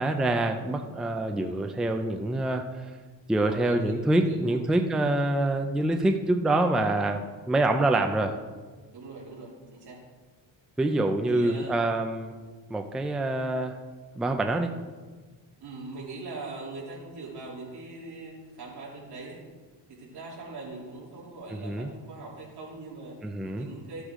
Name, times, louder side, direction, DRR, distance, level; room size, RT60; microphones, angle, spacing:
voice 1, 0.0-2.9 3.3-8.4 10.8-12.3 12.7-13.8 14.2-14.7 21.5-21.9 23.2-23.7, right 2 dB, ahead, 5 dB, 0.4 m, -26 dB
voice 2, 3.4-4.6 6.5-6.6 8.9-10.0 11.3-11.8 15.6-19.4 19.9-23.2 23.5-24.0, right 3 dB, 55° right, -4 dB, 3.3 m, -41 dB
13.0 x 8.1 x 3.7 m, 1.4 s
cardioid pair, 150°, 47 cm